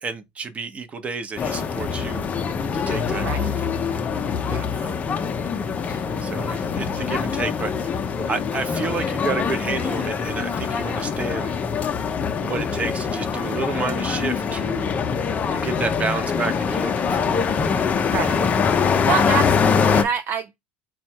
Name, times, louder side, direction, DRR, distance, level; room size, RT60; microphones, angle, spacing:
voice 1, 0.0-2.3 2.7-3.5 4.5-4.9 6.2-11.6 12.4-14.9 15.5-17.5, right 4 dB, 25° right, 0.8 m, -30 dB
sound 1, 1.4-20.0, left 6 dB, 30° left, 0.6 m, -24 dB
voice 2, 3.1-3.5 3.9-4.0 4.5-4.6 5.9-6.9 18.0-18.4 19.1-20.6, right 8 dB, 40° right, 0.4 m, -28 dB
4.2 x 2.3 x 4.3 m
supercardioid pair, 110°, 5 cm